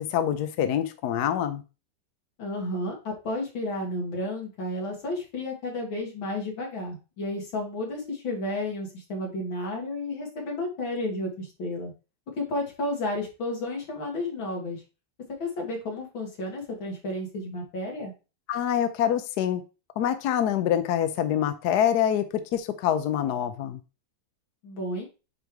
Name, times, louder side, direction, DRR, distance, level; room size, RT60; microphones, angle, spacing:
voice 1, 0.0-1.6 18.5-19.6 20.0-22.2 22.5-23.8, left 10 dB, 65° left, 9 dB, 1.1 m, -25 dB
voice 2, 2.4-11.9 12.4-14.8 15.4-18.1 24.6-25.1, left 1 dB, 85° left, 0 dB, 2.7 m, -32 dB
9.0 x 3.2 x 3.5 m, 0.31 s
omnidirectional pair, 2.1 m